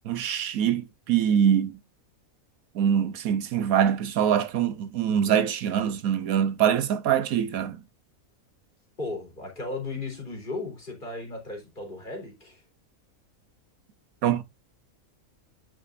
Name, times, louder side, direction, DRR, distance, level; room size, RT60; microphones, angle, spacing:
voice 1, 0.0-1.8 2.7-7.8 14.2-14.4, right 9 dB, 80° right, 1.3 m, -24 dB
voice 2, 9.0-12.6, left 3 dB, 35° left, 3.7 m, -35 dB
10.0 x 6.6 x 2.6 m
omnidirectional pair, 1.5 m